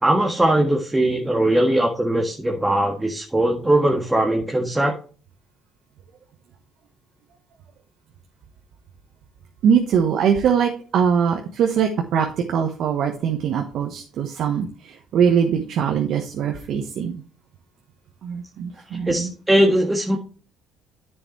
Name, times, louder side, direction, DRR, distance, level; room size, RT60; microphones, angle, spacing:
voice 1, 0.0-4.9 19.1-20.2, right 1 dB, 10° right, 1 dB, 1.7 m, -20 dB
voice 2, 9.6-17.2 18.2-19.3, right 7 dB, 65° right, 3 dB, 1.2 m, -22 dB
10.0 x 6.9 x 3.2 m, 0.38 s
supercardioid pair, 70°, 0 cm